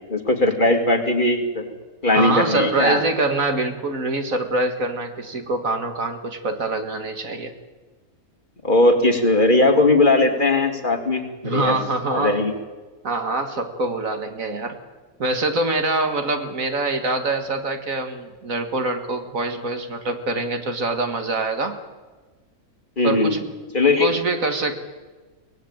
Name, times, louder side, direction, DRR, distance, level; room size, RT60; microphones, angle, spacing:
voice 1, 0.1-1.7 2.0-3.0 8.6-11.8 12.1-12.5 23.0-23.4 23.7-24.2, left 2 dB, 35° left, 4 dB, 2.7 m, -19 dB
voice 2, 2.1-7.5 11.4-12.4 13.0-14.8 15.2-21.8 23.0-23.4 24.0-24.8, right 2 dB, 65° right, 7 dB, 2.3 m, -24 dB
24.0 x 18.5 x 8.9 m, 1.3 s
omnidirectional pair, 1.6 m